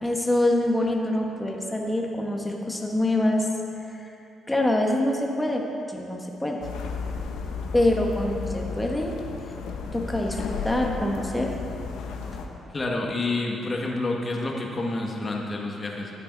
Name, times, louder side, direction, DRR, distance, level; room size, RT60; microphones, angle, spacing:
voice 1, 0.0-3.4 3.9-4.1 4.5-6.6 7.7-9.2 9.9-11.5, left 1 dB, 10° left, 0 dB, 1.4 m, -25 dB
sound 1, 6.6-12.5, left 5 dB, 90° left, 1.0 m, -33 dB
voice 2, 12.7-16.1, left 2 dB, 30° left, -1 dB, 1.7 m, -28 dB
13.5 x 9.0 x 4.1 m, 2.8 s
cardioid pair, 90°, 0 cm